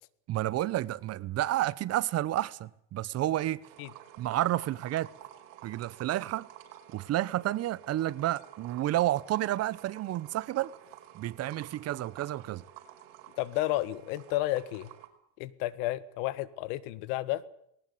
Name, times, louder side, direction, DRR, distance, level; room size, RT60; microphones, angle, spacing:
voice 1, 0.3-3.6 4.2-5.1 5.6-6.5 6.9-10.7 11.1-12.6, right 14 dB, 40° right, 1.0 m, -30 dB
sound 1, 3.6-15.1, right 12 dB, 80° right, 5.2 m, -51 dB
voice 2, 13.4-14.9 15.4-17.4, left 16 dB, 75° left, 1.8 m, -32 dB
21.0 x 19.0 x 8.6 m
cardioid pair, 140°, 38 cm